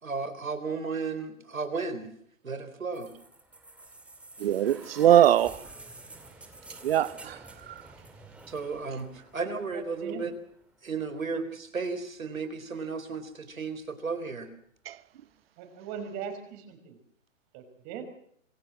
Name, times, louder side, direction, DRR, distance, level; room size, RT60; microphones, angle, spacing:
voice 1, 0.0-2.1 2.4-3.1 8.5-10.3 10.8-14.5, right 4 dB, 85° right, 4.2 m, -34 dB
sound 1, 2.9-10.8 11.9-12.0, right 2 dB, 5° right, 2.3 m, -49 dB
voice 2, 4.4-5.7 6.8-7.8 14.9-15.0, right 11 dB, 45° right, 0.9 m, -22 dB
voice 3, 9.7-10.3 15.6-17.0 17.5-18.0, right 7 dB, 30° right, 5.3 m, -40 dB
26.0 x 15.5 x 7.6 m
hypercardioid pair, 140°, 40 cm